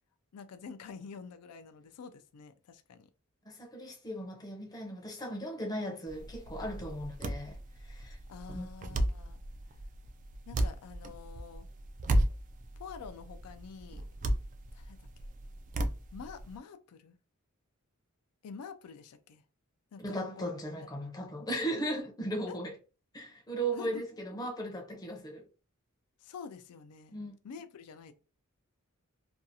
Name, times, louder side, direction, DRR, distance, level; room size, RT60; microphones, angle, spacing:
voice 1, 0.3-3.1 8.3-9.4 10.5-11.7 12.8-14.0 14.7-15.0 16.1-17.2 18.4-19.4 19.9-20.5 21.0-21.1 22.5-22.6 23.8-24.1 26.2-27.2 27.4-28.1, left 5 dB, 85° left, 0.4 m, -47 dB
voice 2, 3.5-7.6 7.8-8.2 8.5-8.7 20.0-22.8 23.1-25.5 27.1-27.4, right 1 dB, 15° left, 0.6 m, -37 dB
sound 1, 6.1-16.6, right 1 dB, 35° right, 0.3 m, -35 dB
2.6 x 2.3 x 2.6 m
head